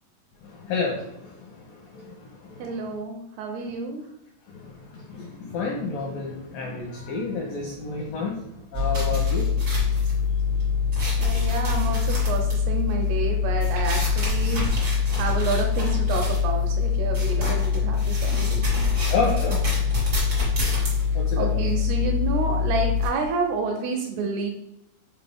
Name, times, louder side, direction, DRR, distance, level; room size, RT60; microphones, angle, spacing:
voice 1, 0.4-1.3 1.7-2.2 2.4-2.7 4.5-8.4 8.7-9.5 18.9-19.6 21.2-21.6, left 4 dB, 80° left, -2 dB, 2.0 m, -30 dB
voice 2, 2.6-4.0 11.2-14.8 15.2-18.8 21.4-24.5, right 4 dB, 80° right, 3 dB, 2.5 m, -29 dB
sound 1, 8.7-23.1, left 5 dB, 60° right, 1.0 m, -23 dB
6.6 x 4.2 x 3.5 m, 0.84 s
omnidirectional pair, 5.1 m